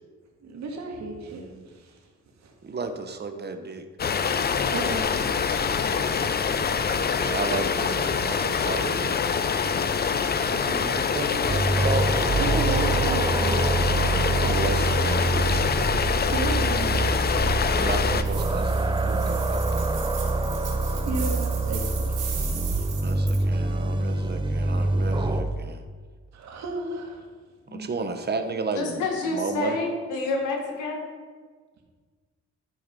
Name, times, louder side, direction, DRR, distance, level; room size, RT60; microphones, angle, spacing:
voice 1, 0.4-2.0 2.4-2.5 4.7-5.1 12.4-14.4 16.3-17.0 21.0-22.3 26.3-27.3, right 2 dB, 65° right, 1 dB, 2.1 m, -33 dB
voice 2, 2.6-3.9 6.8-9.2 10.4-12.1 14.3-15.7 17.7-19.9 23.0-25.8 27.7-29.8, right 4 dB, 35° right, 7 dB, 1.0 m, -33 dB
sound 1, 4.0-18.2, left 6 dB, 35° left, 0.6 m, -25 dB
sound 2, 11.5-25.4, right 2 dB, 15° right, 0.7 m, -25 dB
sound 3, 18.2-23.4, right 7 dB, 85° right, 2.7 m, -38 dB
voice 3, 28.7-31.1, left 3 dB, 80° left, 1 dB, 2.0 m, -28 dB
12.0 x 4.9 x 5.4 m, 1.5 s
cardioid pair, 90°, 30 cm